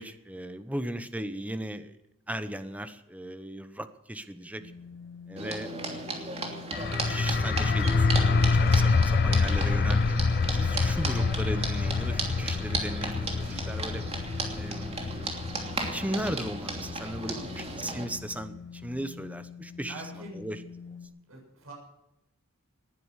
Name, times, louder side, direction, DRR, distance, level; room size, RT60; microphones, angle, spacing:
voice 1, 0.0-2.0 2.3-4.6 5.3-5.7 6.9-10.2 10.5-14.0 14.5-21.0, right 1 dB, 5° right, 11 dB, 1.0 m, -37 dB
sound 1, 4.6-21.1, left 6 dB, 70° left, 5.3 m, -46 dB
sound 2, 5.4-18.0, right 3 dB, 30° right, 2.9 m, -35 dB
sound 3, 6.7-18.2, left 4 dB, 50° left, 0.5 m, -27 dB
voice 2, 17.2-17.5 19.9-20.5 21.3-21.7, right 2 dB, 75° right, -1 dB, 7.5 m, -44 dB
19.0 x 11.0 x 6.5 m, 0.86 s
head